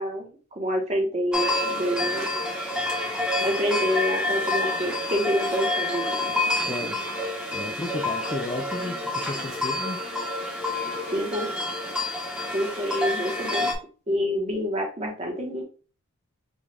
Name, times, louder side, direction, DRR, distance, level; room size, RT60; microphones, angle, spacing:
voice 1, 0.0-2.3 3.4-6.2 11.1-11.5 12.5-13.7 14.1-15.6, equal, 30° right, 1 dB, 1.1 m, -27 dB
sound 1, 1.3-13.7, left 2 dB, 5° right, 0.9 m, -28 dB
voice 2, 6.7-7.0 7.5-10.0, left 2 dB, 20° left, 5 dB, 0.3 m, -33 dB
5.4 x 2.4 x 3.4 m, 0.36 s
head